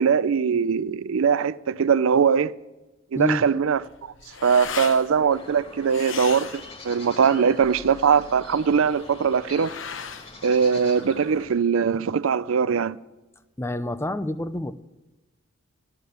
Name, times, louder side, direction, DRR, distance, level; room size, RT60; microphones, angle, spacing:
voice 1, 0.0-2.5 3.1-3.8 4.4-9.7 10.4-13.0, right 6 dB, 80° right, 0.5 m, -21 dB
voice 2, 3.1-3.5 13.6-14.7, left 1 dB, 10° left, 0.5 m, -27 dB
sound 1, 3.6-11.5, left 7 dB, 65° left, 0.9 m, -38 dB
sound 2, 5.3-11.5, left 2 dB, 30° left, 1.8 m, -44 dB
13.5 x 11.0 x 6.6 m
head